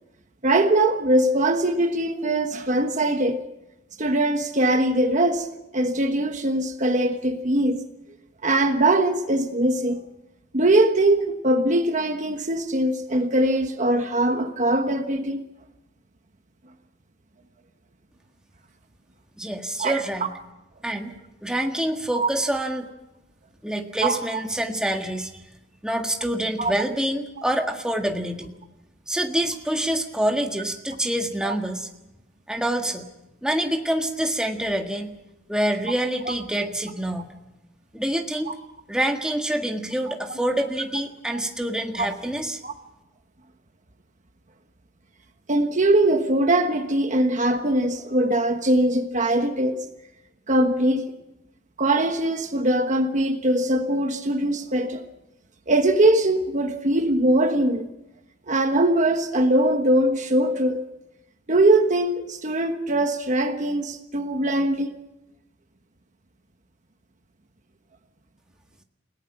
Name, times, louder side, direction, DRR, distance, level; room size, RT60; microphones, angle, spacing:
voice 1, 0.4-3.4 4.0-5.5 5.7-7.8 8.4-10.0 10.5-15.4 19.8-20.0 22.1-22.3 24.0-24.2 26.6-26.7 31.4-31.5 41.3-41.4 42.0-42.1 42.6-42.7 45.5-49.8 50.5-51.1 51.8-55.1 55.7-57.9 58.5-60.8 61.5-64.9, right 1 dB, 40° right, 6 dB, 1.3 m, -21 dB
voice 2, 19.4-20.3 20.8-21.1 21.4-22.9 23.6-25.4 25.8-28.5 29.1-31.9 32.5-33.1 33.4-35.1 35.5-37.3 37.9-38.5 38.9-42.6, right 1 dB, 5° right, 3 dB, 1.7 m, -26 dB
29.5 x 18.0 x 6.0 m, 0.92 s
head